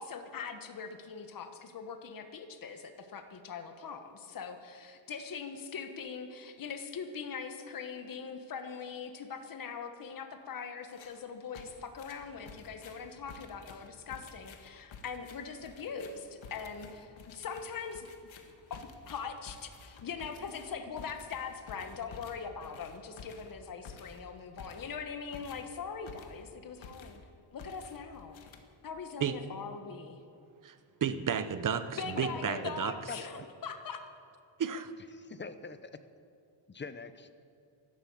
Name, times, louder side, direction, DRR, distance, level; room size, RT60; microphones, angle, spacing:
voice 1, 0.0-4.6 5.1-18.1 18.7-27.2 27.5-28.4 28.8-30.2 32.0-34.0, left 6 dB, 45° left, 7 dB, 1.2 m, -41 dB
sound 1, 10.9-11.2 11.5-26.5 26.8-27.3 27.6-29.0, left 5 dB, 75° left, 1.6 m, -52 dB
voice 2, 31.0-32.9 34.6-34.9, right 7 dB, 45° right, 11 dB, 0.9 m, -32 dB
voice 3, 32.2-32.7 33.1-33.5 35.1-35.9 36.7-37.3, left 4 dB, 25° left, 11 dB, 0.6 m, -44 dB
12.0 x 12.0 x 8.6 m, 2.5 s
wide cardioid pair, 150°, 46 cm